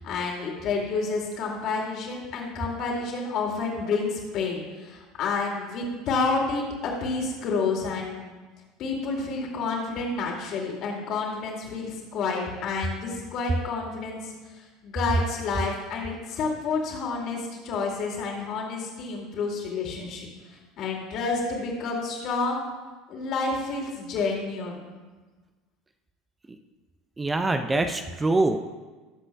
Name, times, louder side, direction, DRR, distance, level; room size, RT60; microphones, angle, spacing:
voice 1, 0.0-8.3 8.8-20.3 20.8-22.6 23.1-24.8, left 4 dB, 45° left, -1 dB, 2.5 m, -29 dB
voice 2, 27.2-28.6, right 2 dB, 15° right, 7 dB, 0.6 m, -24 dB
19.5 x 7.6 x 2.3 m, 1.3 s
figure-of-eight pair, 70°, 0 cm